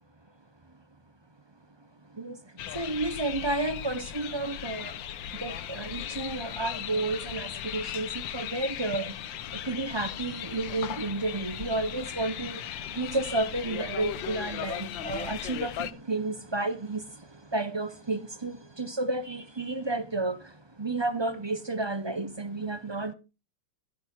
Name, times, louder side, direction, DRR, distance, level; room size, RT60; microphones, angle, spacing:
sound 1, 2.6-15.9, left 11 dB, 85° left, 1.5 m, -37 dB
voice 1, 2.7-5.0 5.4-9.1 9.6-12.6 12.9-17.1 17.5-20.4 20.8-23.1, right 2 dB, 35° right, 0.4 m, -31 dB
15.0 x 7.7 x 4.5 m
omnidirectional pair, 2.0 m